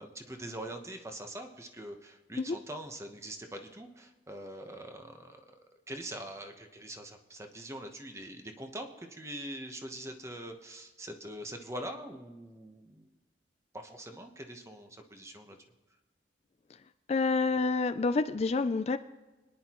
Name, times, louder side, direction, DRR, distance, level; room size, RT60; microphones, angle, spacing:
voice 1, 0.0-5.4 5.9-13.1 13.7-15.6, right 1 dB, 15° right, 5 dB, 1.1 m, -43 dB
voice 2, 17.1-19.0, left 3 dB, 35° left, 10 dB, 0.4 m, -28 dB
26.5 x 10.5 x 3.0 m, 1.2 s
head